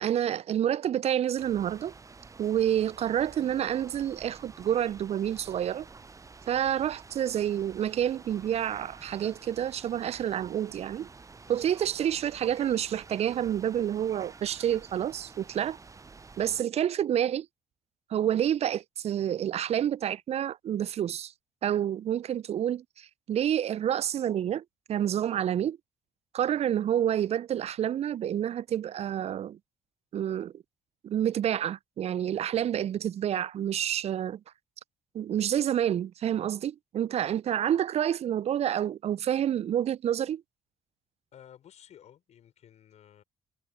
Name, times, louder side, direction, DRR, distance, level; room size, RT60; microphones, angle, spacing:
voice 1, 0.0-1.9 2.4-5.9 6.5-11.1 11.5-15.8 16.4-17.5 18.1-21.3 21.6-24.6 24.9-25.8 26.3-29.6 30.1-30.5 31.0-34.4 35.1-40.4, right 10 dB, 50° right, 0.8 m, -28 dB
sound 1, 1.4-16.6, right 4 dB, 25° right, 1.0 m, -50 dB
voice 2, 41.3-43.2, left 10 dB, 55° left, 5.9 m, -54 dB
figure-of-eight pair, 45°, 14 cm